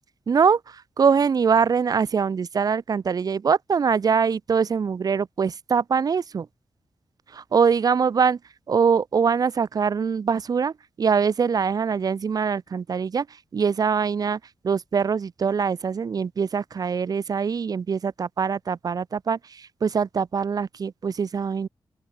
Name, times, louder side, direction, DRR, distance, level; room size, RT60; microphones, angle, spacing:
voice 1, 0.3-6.5 7.3-8.4 8.7-13.3 13.5-21.7, right 6 dB, 45° right, 0.6 m, -23 dB
open air
wide cardioid pair, 145°, 9 cm